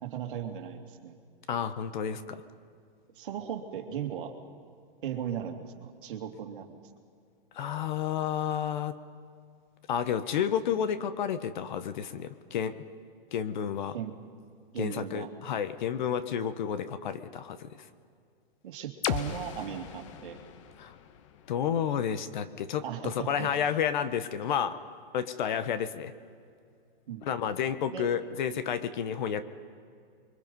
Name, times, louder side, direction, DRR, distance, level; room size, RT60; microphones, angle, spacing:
voice 1, 0.0-1.2 3.1-4.3 5.0-6.7 13.9-14.2 14.7-15.3 18.6-20.4 22.8-23.8 27.1-27.4 27.9-28.1, right 9 dB, 60° right, 3 dB, 2.7 m, -37 dB
voice 2, 1.5-2.4 7.5-9.0 9.9-12.8 13.3-13.9 14.8-17.9 20.8-21.0 21.5-24.8 25.1-26.1 27.2-29.4, left 8 dB, 50° left, 13 dB, 1.2 m, -31 dB
sound 1, 19.0-22.9, left 9 dB, 35° left, 0.8 m, -38 dB
29.5 x 23.5 x 5.5 m, 2.3 s
hypercardioid pair, 160°, 30 cm